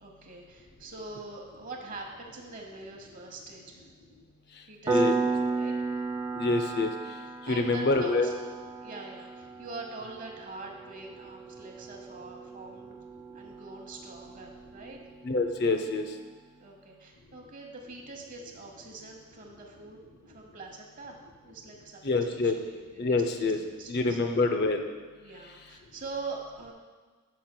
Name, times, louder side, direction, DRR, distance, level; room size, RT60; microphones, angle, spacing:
voice 1, 0.0-3.9 4.7-5.7 7.5-8.3 8.8-12.9 13.3-15.0 16.6-20.0 20.2-21.2 21.4-23.5 23.8-24.2 25.2-26.7, right 3 dB, 35° right, 1 dB, 1.0 m, -43 dB
Piano, 4.9-15.2, right 4 dB, 20° right, 0.5 m, -34 dB
voice 2, 6.3-6.9 7.5-8.3 15.2-16.0 22.0-22.5 23.0-23.6 23.9-24.9, left 3 dB, 50° left, 6 dB, 0.5 m, -26 dB
9.8 x 7.5 x 2.2 m, 1.4 s
head